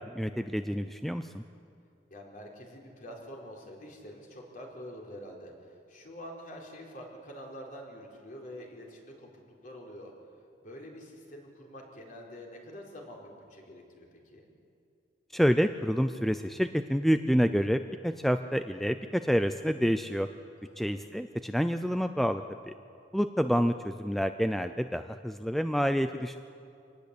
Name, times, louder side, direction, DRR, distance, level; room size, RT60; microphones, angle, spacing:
voice 1, 0.1-1.4 15.3-20.3 20.8-22.4 23.1-26.4, equal, ahead, 9 dB, 0.5 m, -28 dB
voice 2, 2.1-10.1 10.6-14.5 20.6-21.0, equal, 50° left, -1 dB, 4.4 m, -46 dB
26.0 x 19.0 x 8.5 m, 2.5 s
head